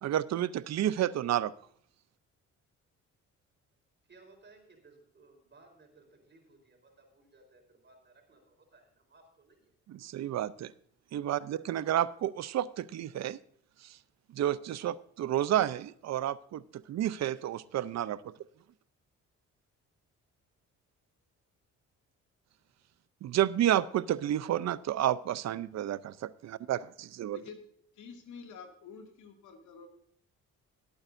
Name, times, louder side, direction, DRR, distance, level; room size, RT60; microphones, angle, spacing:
voice 1, 0.0-1.5 9.9-10.7 11.1-13.4 13.8-14.0 14.3-16.6 16.9-18.3 23.2-27.4, right 12 dB, 60° right, 17 dB, 0.6 m, -30 dB
voice 2, 4.1-9.8, right 3 dB, 35° right, 3 dB, 4.1 m, -60 dB
voice 3, 27.9-29.9, left 5 dB, 75° left, 3 dB, 2.2 m, -48 dB
19.5 x 8.7 x 2.6 m, 0.65 s
cardioid pair, 90°, 30 cm